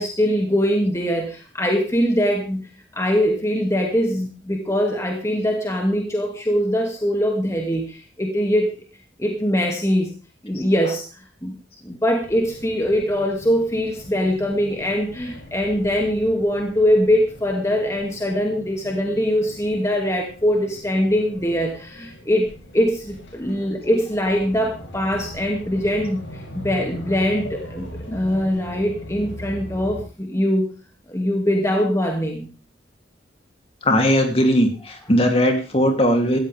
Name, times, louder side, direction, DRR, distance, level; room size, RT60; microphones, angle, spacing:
voice 1, 0.0-8.7 9.2-10.1 10.4-11.1 11.4-11.5 11.8-30.7 31.1-32.5, equal, 15° left, 1 dB, 2.4 m, -22 dB
sound 1, 12.2-30.0, equal, 80° left, 7.5 m, -40 dB
voice 2, 33.8-36.4, equal, 30° left, 4 dB, 3.1 m, -18 dB
18.0 x 14.5 x 3.6 m, 0.34 s
head